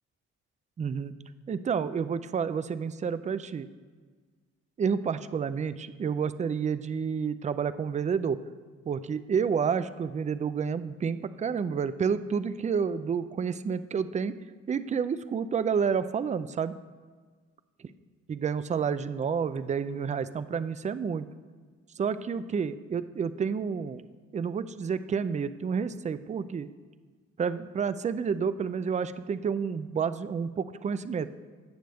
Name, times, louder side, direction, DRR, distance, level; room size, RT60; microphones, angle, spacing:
voice 1, 0.8-1.1 1.5-3.7 4.8-8.4 8.9-14.3 14.7-16.7 18.3-21.3 22.0-24.0 24.3-26.7 27.4-31.4, right 6 dB, 25° right, 13 dB, 0.4 m, -29 dB
17.0 x 6.5 x 3.5 m, 1.5 s
cardioid pair, 90°, 30 cm